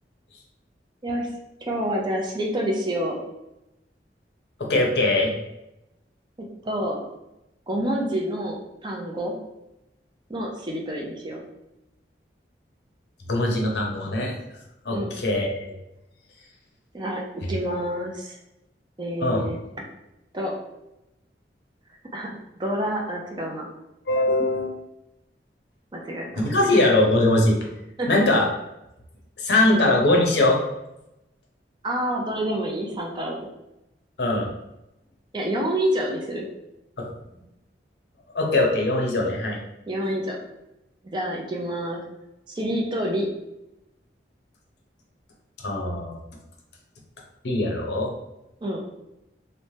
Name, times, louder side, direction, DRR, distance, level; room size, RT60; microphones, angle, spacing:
voice 1, 1.6-3.2 6.6-7.0 7.7-9.3 10.3-11.4 14.9-15.1 16.9-18.4 19.0-19.6 20.3-20.5 22.1-22.3 22.6-23.7 25.9-26.8 28.0-28.3 29.7-29.8 31.8-33.5 35.3-36.5 39.9-40.4 41.0-42.0 42.5-43.3 48.6-48.8, equal, 25° right, -1 dB, 0.4 m, -28 dB
voice 2, 4.6-5.3 13.3-14.3 14.8-15.7 19.2-19.4 24.1-24.7 26.4-27.6 28.1-28.5 29.4-30.6 34.2-34.5 37.0-37.1 38.3-39.6 45.6-46.1 47.4-48.1, left 2 dB, 70° left, 0 dB, 0.6 m, -21 dB
3.1 x 2.1 x 2.7 m, 0.89 s
head